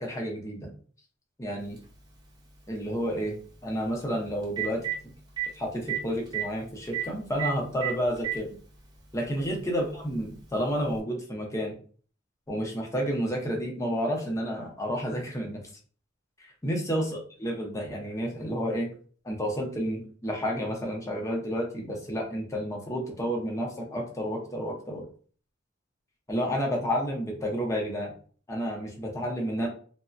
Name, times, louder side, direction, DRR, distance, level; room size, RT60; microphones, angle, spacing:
voice 1, 0.0-0.7 1.4-1.8 2.7-5.1 5.5-8.5 9.1-11.7 12.5-15.6 16.6-17.1 17.4-18.9 19.2-25.0 26.3-28.1 28.5-29.7, equal, 15° left, 0 dB, 0.6 m, -30 dB
Telephone, 1.8-1.9 4.0-4.1 4.4-4.9 5.4-5.5 5.9-6.0 6.3-6.4 6.9-7.0 7.4-7.5 7.8-8.4 9.4-9.5 10.9-11.0, right 13 dB, 20° right, 0.6 m, -29 dB
3.1 x 2.1 x 2.5 m, 0.43 s
head